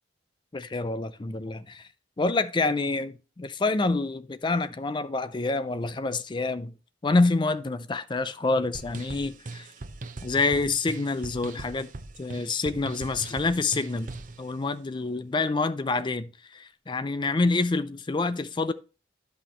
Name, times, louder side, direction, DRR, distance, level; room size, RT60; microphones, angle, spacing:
voice 1, 0.5-1.9 2.2-6.8 7.0-9.7 10.2-11.9 12.2-14.1 14.4-18.7, left 3 dB, 25° left, 0.4 m, -27 dB
sound 1, 8.7-14.4, right 2 dB, 45° right, 0.7 m, -40 dB
10.0 x 5.9 x 3.0 m
head